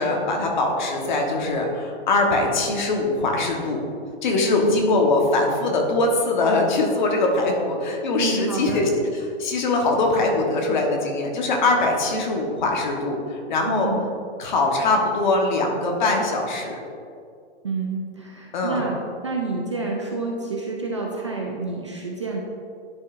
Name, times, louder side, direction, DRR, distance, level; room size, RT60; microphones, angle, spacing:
voice 1, 0.0-3.8 4.2-8.9 9.4-13.9 14.4-16.8 18.5-18.8, left 2 dB, 45° left, 1 dB, 1.1 m, -22 dB
voice 2, 4.5-4.8 8.2-8.8 13.7-14.1 17.6-22.4, right 3 dB, 30° right, -1 dB, 0.4 m, -29 dB
11.0 x 4.8 x 2.5 m, 2.3 s
hypercardioid pair, 170°, 33 cm